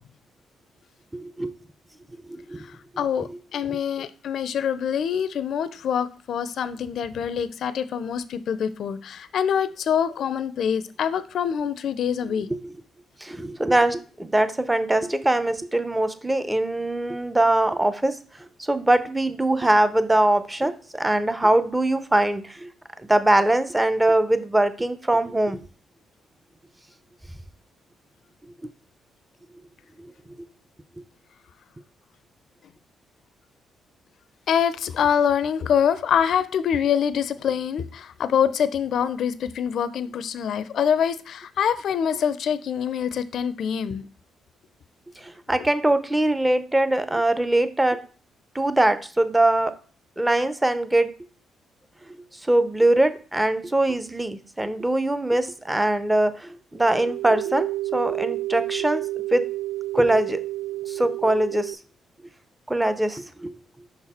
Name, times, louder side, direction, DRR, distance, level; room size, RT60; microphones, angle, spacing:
voice 1, 1.1-1.5 2.3-2.6 3.7-3.8 12.5-12.6 13.2-18.2 18.6-22.7 23.1-25.6 30.0-30.1 45.2-48.0 48.5-49.7 50.2-51.1 52.5-59.5 59.9-60.4 60.9-61.8 62.7-63.5, right 1 dB, 10° right, 12 dB, 0.6 m, -22 dB
voice 2, 3.0-12.5 34.5-44.1, left 8 dB, 65° left, 14 dB, 0.4 m, -25 dB
sound 1, 56.8-61.7, right 17 dB, 65° right, 0.3 m, -30 dB
5.5 x 4.0 x 4.2 m, 0.38 s
cardioid pair, 90°, 0 cm